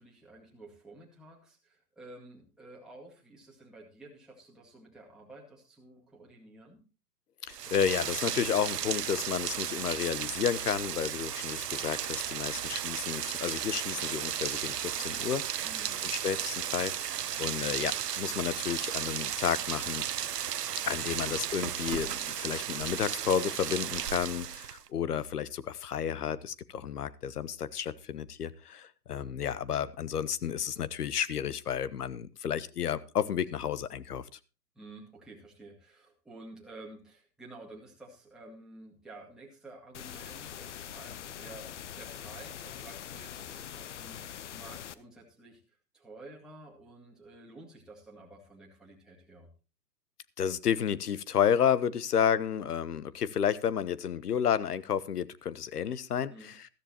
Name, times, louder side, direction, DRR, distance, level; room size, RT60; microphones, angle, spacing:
voice 1, 0.0-6.8 15.6-16.0 34.8-45.6 45.9-49.5 56.3-56.6, right 2 dB, ahead, -4 dB, 2.1 m, -51 dB
voice 2, 7.5-15.6 16.0-20.0 20.9-34.2 50.4-56.6, left 8 dB, 70° left, 18 dB, 1.0 m, -31 dB
Rain, 7.5-24.9, right 10 dB, 75° right, 0.8 m, -34 dB
sound 1, 39.9-44.9, left 10 dB, 45° left, 0.8 m, -43 dB
14.0 x 13.5 x 2.9 m, 0.32 s
hypercardioid pair, 140°, 49 cm